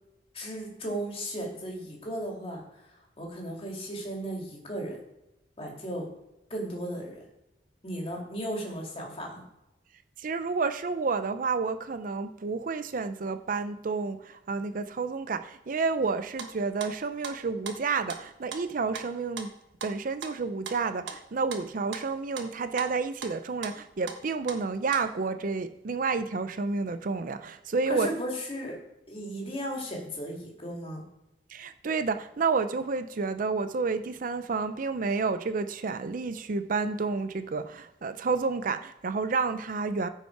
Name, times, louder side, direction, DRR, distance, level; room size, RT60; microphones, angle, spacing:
voice 1, 0.3-5.0 5.6-6.1 6.5-7.2 7.8-9.4 27.9-28.8 29.1-31.0, equal, 30° left, -1 dB, 2.5 m, -35 dB
voice 2, 10.2-19.5 19.8-28.1 31.5-40.1, right 4 dB, 50° right, 10 dB, 0.5 m, -30 dB
sound 1, 16.0-25.0, right 5 dB, 90° right, 1.2 m, -40 dB
15.0 x 5.5 x 4.6 m, 0.91 s
head